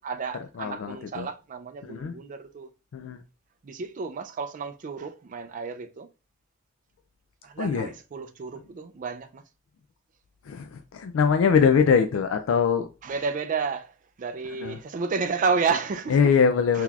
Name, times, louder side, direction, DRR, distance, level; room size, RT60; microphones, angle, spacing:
voice 1, 0.0-2.7 3.6-6.1 7.4-9.4 13.0-16.3 16.7-16.8, right 5 dB, 40° right, 0.4 m, -31 dB
voice 2, 0.5-1.3 1.8-2.2 2.9-3.2 7.6-7.9 10.4-12.9 14.5-14.8 16.1-16.8, left 6 dB, 85° left, 0.3 m, -23 dB
3.8 x 2.9 x 2.3 m
head